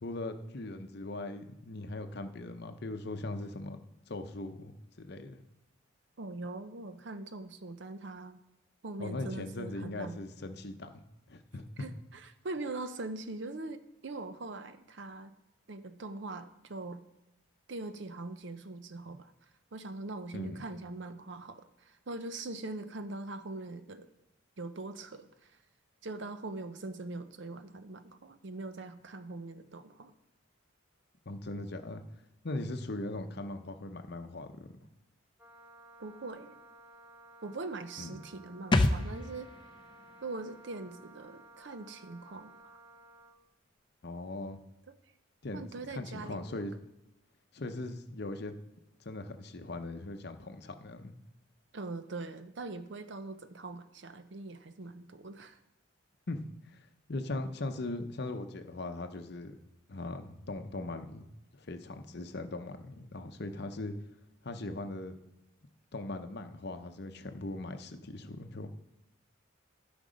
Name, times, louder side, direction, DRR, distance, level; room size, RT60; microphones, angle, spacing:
voice 1, 0.0-3.8 4.1-4.7 5.0-5.4 9.0-11.0 11.3-11.9 20.3-20.6 31.3-32.0 32.4-34.7 38.0-38.2 44.0-44.6 45.4-45.6 45.9-46.7 47.5-48.5 49.0-51.1 56.3-56.4 57.1-59.6 59.9-61.3 61.5-63.9 64.4-65.1 65.9-68.7, left 2 dB, 50° left, 7 dB, 0.7 m, -39 dB
voice 2, 6.2-8.4 8.8-10.2 11.8-15.3 15.7-17.0 17.7-19.3 19.7-24.1 24.6-25.6 26.0-30.1 36.0-36.6 37.4-39.5 40.2-42.8 44.9-45.0 45.5-46.6 51.7-55.6, right 2 dB, 55° right, 10 dB, 0.6 m, -42 dB
Wind instrument woodwind instrument, 35.4-43.4, right 2 dB, 10° right, 1.2 m, -56 dB
sound 1, 38.7-42.2 42.5-42.6, left 2 dB, 20° left, 0.4 m, -33 dB
12.0 x 5.2 x 5.2 m, 0.94 s
head